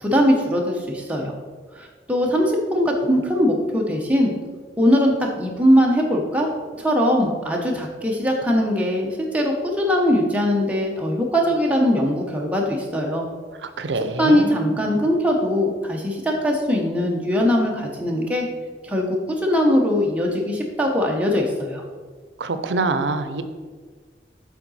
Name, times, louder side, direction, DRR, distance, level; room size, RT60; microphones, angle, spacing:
voice 1, 0.0-1.3 1.7-4.3 4.8-6.5 6.8-13.2 14.2-18.5 18.8-21.8, equal, 10° right, -1 dB, 0.8 m, -21 dB
voice 2, 13.6-14.5 22.4-23.4, right 3 dB, 90° right, 10 dB, 0.5 m, -25 dB
7.3 x 3.9 x 4.1 m, 1.5 s
head